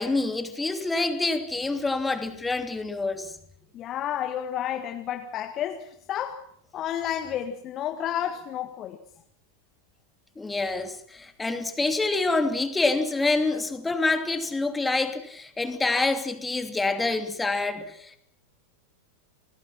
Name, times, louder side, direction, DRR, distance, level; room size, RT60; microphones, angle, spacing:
voice 1, 0.0-3.3 10.4-18.2, left 3 dB, 10° left, 2.8 m, -27 dB
voice 2, 3.7-6.5 6.7-9.0, left 10 dB, 30° left, 1.8 m, -31 dB
29.5 x 20.0 x 6.0 m
figure-of-eight pair, 90°, 0 cm